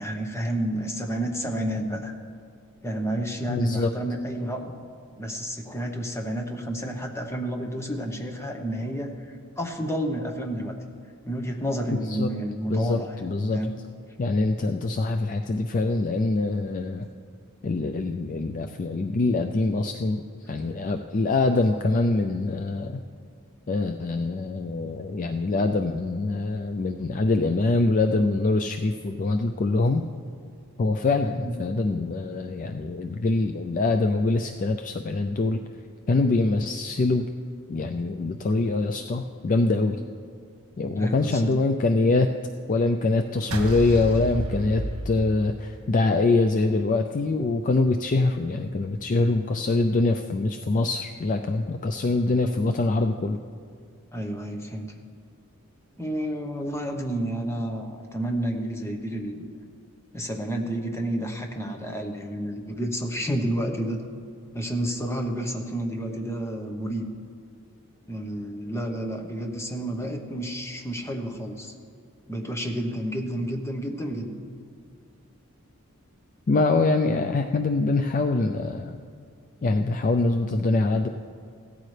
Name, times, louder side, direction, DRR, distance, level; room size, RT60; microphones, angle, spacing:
voice 1, 0.0-2.1 2.8-4.8 5.2-10.8 11.3-13.2 13.5-13.7 31.4-31.5 41.0-41.5 45.9-46.0 54.1-54.9 56.0-59.5 60.1-64.0 64.5-67.1 68.1-71.7 72.3-74.3, right 1 dB, 10° left, 3 dB, 1.0 m, -30 dB
voice 2, 3.5-3.9 11.9-12.3 12.7-13.6 14.2-17.1 17.6-20.2 20.5-23.0 23.7-30.0 30.8-35.6 36.1-37.2 37.7-40.0 40.8-42.3 42.7-53.4 76.5-79.0 79.6-81.1, left 3 dB, 35° left, 6 dB, 0.4 m, -24 dB
sound 1, 43.5-45.8, right 1 dB, 70° right, 1.6 m, -31 dB
17.0 x 13.0 x 3.3 m, 2.2 s
head